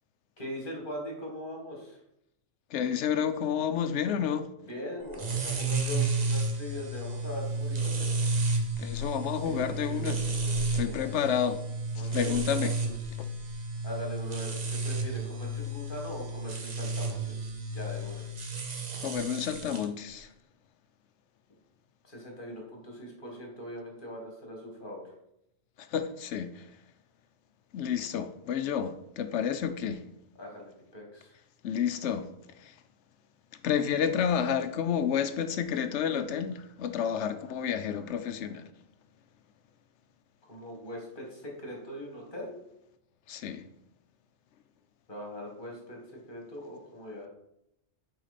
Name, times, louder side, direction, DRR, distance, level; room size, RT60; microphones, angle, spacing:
voice 1, 0.4-2.0 4.6-8.1 9.4-11.1 12.0-13.0 13.8-17.4 17.7-18.3 22.0-25.1 30.4-31.3 40.5-42.6 45.1-46.0 46.3-47.3, equal, 45° left, 2.0 m, -41 dB
voice 2, 2.7-4.5 8.8-10.2 10.7-11.6 11.9-12.8 19.0-20.3 25.9-26.6 27.7-30.0 31.6-32.3 32.6-32.7 33.6-38.6 43.3-43.7, left 8 dB, 70° left, 0.9 m, -30 dB
sound 1, 5.1-19.8, right 3 dB, 40° right, 0.9 m, -32 dB
6.0 x 4.9 x 4.2 m
omnidirectional pair, 1.3 m